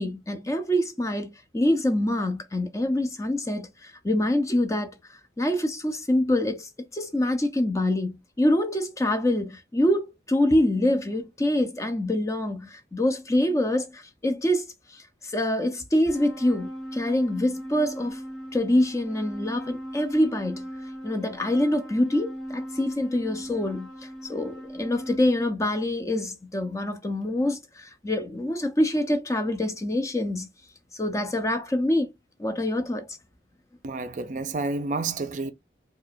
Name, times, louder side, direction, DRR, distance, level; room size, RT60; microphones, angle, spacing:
voice 1, 0.0-5.0 5.4-18.2 18.5-20.6 21.0-30.5 30.9-32.1 32.4-33.2, left 1 dB, 15° left, 0.5 m, -25 dB
sound 1, 16.0-25.2, equal, ahead, 1.6 m, -39 dB
voice 2, 33.8-35.5, right 3 dB, 40° right, 0.4 m, -29 dB
4.6 x 2.3 x 2.5 m
head